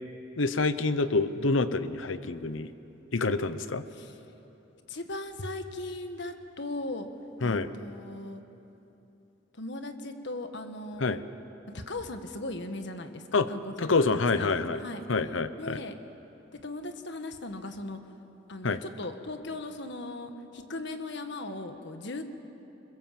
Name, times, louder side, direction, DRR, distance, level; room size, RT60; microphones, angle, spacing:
voice 1, 0.4-2.7 3.1-3.8 7.4-7.7 11.0-11.2 13.3-13.5 13.8-14.8 15.1-15.8 18.6-18.8, left 3 dB, 85° left, 12 dB, 0.9 m, -27 dB
voice 2, 4.9-7.1 7.4-8.4 9.5-11.2 11.7-14.1 14.4-15.0 15.6-16.0 16.5-18.0 18.5-22.2, left 2 dB, 65° left, 7 dB, 1.6 m, -38 dB
25.0 x 21.5 x 7.7 m, 2.9 s
head